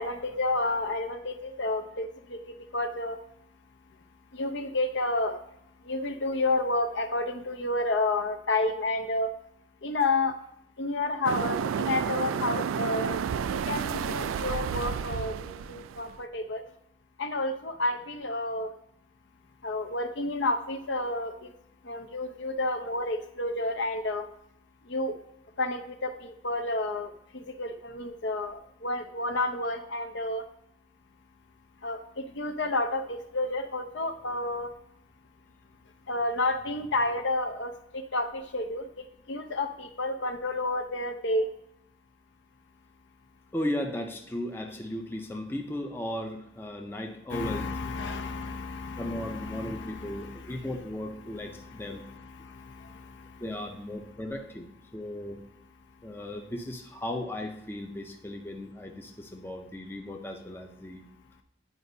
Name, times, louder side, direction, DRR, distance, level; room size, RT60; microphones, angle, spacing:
voice 1, 0.0-3.2 4.3-5.4 5.8-9.3 9.8-10.4 10.8-13.2 13.5-16.6 17.2-18.7 19.6-21.5 21.8-24.3 24.8-25.1 25.6-30.5 31.8-34.7 36.1-41.5 47.3-50.7 51.2-53.4, left 2 dB, 65° left, 7 dB, 0.6 m, -31 dB
sound 1, 11.2-16.2, right 7 dB, 90° right, 0.3 m, -31 dB
voice 2, 43.5-47.7 49.0-52.0 53.4-55.4 56.0-61.0, left 1 dB, 10° left, 3 dB, 0.5 m, -36 dB
9.6 x 5.0 x 2.7 m, 0.77 s
head